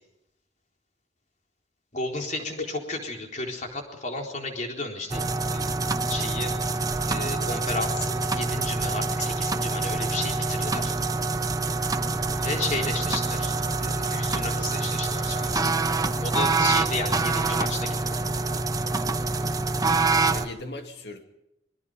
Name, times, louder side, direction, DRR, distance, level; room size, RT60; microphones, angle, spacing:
voice 1, 1.9-5.7 6.1-6.8 7.1-10.9 12.4-15.7 16.2-18.2, left 2 dB, 45° left, 2 dB, 4.0 m, -33 dB
sound 1, 5.1-20.5, right 3 dB, 20° right, 0.9 m, -26 dB
voice 2, 20.1-21.2, left 2 dB, 65° left, 5 dB, 2.6 m, -38 dB
26.5 x 21.5 x 5.4 m, 0.86 s
head